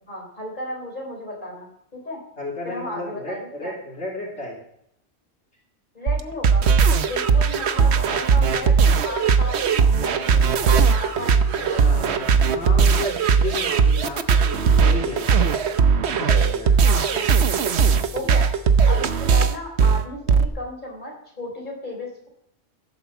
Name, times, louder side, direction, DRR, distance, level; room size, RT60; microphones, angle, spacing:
voice 1, 0.1-2.2 2.6-3.7 5.9-6.6 7.0-12.3 16.8-17.2 18.1-22.3, left 1 dB, 40° left, 0 dB, 4.1 m, -34 dB
voice 2, 2.4-4.6 11.5-15.6 16.0-16.7 18.1-18.3, left 2 dB, 75° left, -3 dB, 3.6 m, -33 dB
sound 1, 6.1-20.5, right 6 dB, 70° right, 1.1 m, -18 dB
16.5 x 7.4 x 7.1 m, 0.73 s
omnidirectional pair, 1.2 m